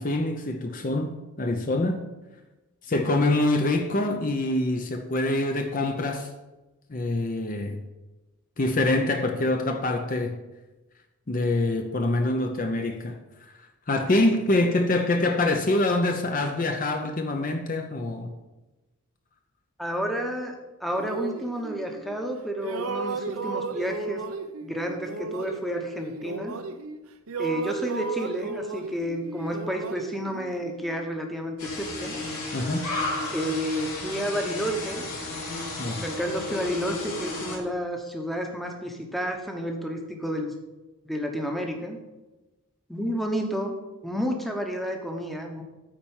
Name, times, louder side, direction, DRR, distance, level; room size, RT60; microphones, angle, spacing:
voice 1, 0.0-2.0 2.8-6.3 6.9-7.8 8.6-10.4 11.3-13.5 13.9-18.3 32.5-32.9 35.8-36.0, left 2 dB, 40° left, 0.6 m, -25 dB
voice 2, 19.8-20.5 20.8-24.2 24.6-26.5 27.4-32.2 33.3-35.0 35.9-40.5 41.0-42.0 42.9-43.7 44.0-45.6, equal, ahead, 0.9 m, -30 dB
sound 1, 20.9-22.3 22.6-27.0 27.3-31.1, right 3 dB, 75° right, 0.7 m, -35 dB
sound 2, 31.6-37.6, left 2 dB, 85° left, 2.8 m, -33 dB
9.0 x 4.5 x 7.1 m
head